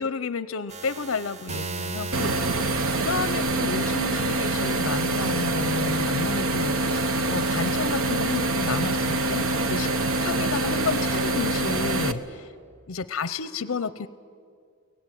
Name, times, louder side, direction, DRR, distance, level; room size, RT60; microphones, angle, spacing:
voice 1, 0.0-9.9 10.2-12.5 12.9-14.1, left 4 dB, 65° left, 15 dB, 0.6 m, -31 dB
sound 1, 0.7-3.5 4.4-5.5, right 3 dB, 30° right, 0.7 m, -36 dB
sound 2, 2.1-12.1, right 2 dB, 80° right, 1.1 m, -25 dB
23.5 x 18.0 x 9.1 m, 2.2 s
head